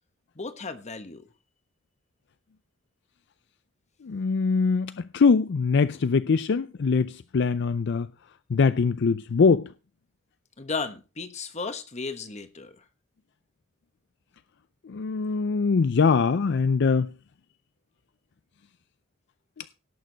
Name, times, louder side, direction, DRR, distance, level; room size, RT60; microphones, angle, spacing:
voice 1, 0.4-1.3 10.6-12.8, left 4 dB, 35° left, 1.2 m, -35 dB
voice 2, 4.0-8.1 8.5-9.7 14.9-17.1 19.6-19.7, left 5 dB, 60° left, 0.4 m, -23 dB
17.5 x 6.7 x 4.0 m
head